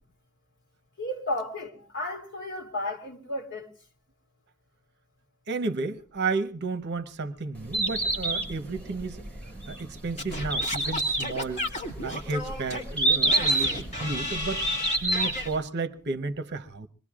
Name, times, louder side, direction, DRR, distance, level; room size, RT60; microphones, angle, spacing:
voice 1, 1.0-3.7, left 1 dB, 55° left, 2.6 m, -33 dB
voice 2, 5.5-9.2 9.7-11.6 12.0-14.6 15.0-16.9, right 3 dB, 50° right, 0.9 m, -32 dB
Bird, 7.5-15.5, right 2 dB, 5° left, 4.7 m, -28 dB
Singing / Scratching (performance technique), 10.2-15.5, left 1 dB, 30° left, 2.7 m, -34 dB
25.0 x 21.5 x 2.4 m
head